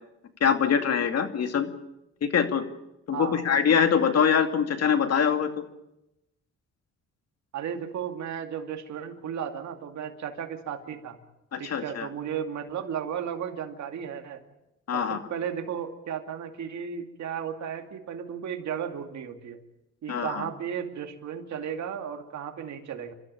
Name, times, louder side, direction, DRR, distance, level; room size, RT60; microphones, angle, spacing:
voice 1, 0.4-1.7 2.2-2.6 3.1-5.5 11.5-12.1 14.9-15.2 20.1-20.5, left 7 dB, 55° left, 7 dB, 2.6 m, -24 dB
voice 2, 7.5-11.2 11.6-14.4 14.9-19.6 20.0-23.1, right 8 dB, 65° right, 5 dB, 2.5 m, -34 dB
30.0 x 13.0 x 8.9 m, 0.91 s
cardioid pair, 90°, 30 cm